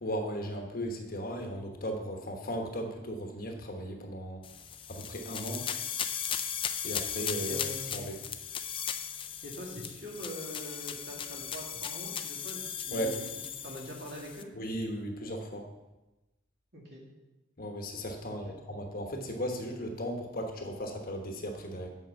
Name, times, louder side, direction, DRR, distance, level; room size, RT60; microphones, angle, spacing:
voice 1, 0.0-4.4 4.9-5.7 6.8-7.6 7.9-8.2 12.9-13.2 14.5-15.7 17.6-21.9, equal, 45° left, 3 dB, 1.1 m, -36 dB
sound 1, 4.4-14.4, left 8 dB, 25° left, 0.4 m, -37 dB
voice 2, 7.4-7.9 9.4-14.5 16.7-17.0 18.2-18.5, equal, 55° right, -2 dB, 2.3 m, -43 dB
7.7 x 5.3 x 6.9 m, 1.0 s
head